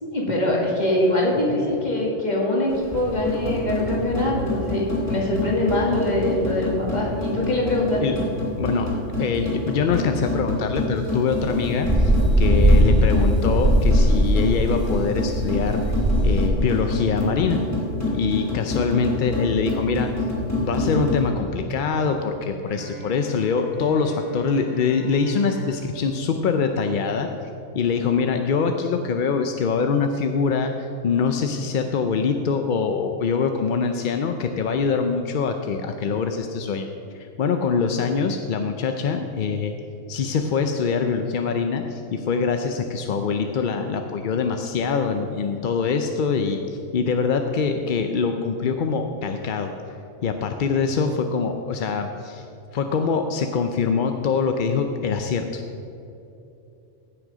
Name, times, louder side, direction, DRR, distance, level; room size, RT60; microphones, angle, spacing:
voice 1, 0.1-8.0, left 1 dB, 35° left, -3 dB, 2.1 m, -23 dB
sound 1, 2.7-21.3, left 2 dB, 10° left, 2.3 m, -27 dB
voice 2, 8.6-8.9 9.2-15.8 16.2-17.6 18.1-20.1 20.5-27.5 27.7-36.9 37.1-39.7 40.1-46.6 46.9-49.7 50.2-52.4 52.7-55.6, left 5 dB, 55° left, 6 dB, 0.6 m, -24 dB
sound 2, 11.4-16.5, right 1 dB, 25° right, 0.9 m, -19 dB
Bowed string instrument, 22.7-27.5, right 1 dB, 65° right, 3.1 m, -40 dB
15.5 x 6.3 x 5.0 m, 2.8 s
omnidirectional pair, 1.3 m